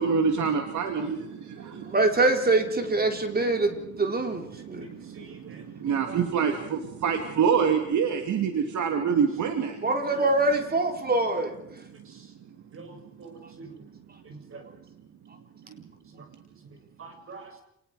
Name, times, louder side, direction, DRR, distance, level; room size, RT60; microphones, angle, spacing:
voice 1, 0.0-2.0 3.2-3.7 3.9-10.3, right 6 dB, 80° right, 2.6 m, -27 dB
voice 2, 1.7-4.9 9.8-11.6, right 2 dB, 30° right, 4.2 m, -24 dB
voice 3, 12.7-13.7 14.3-14.6 16.1-16.2 17.0-17.6, right 4 dB, 45° right, 7.0 m, -45 dB
29.0 x 20.5 x 5.0 m
cardioid pair, 110°, 29 cm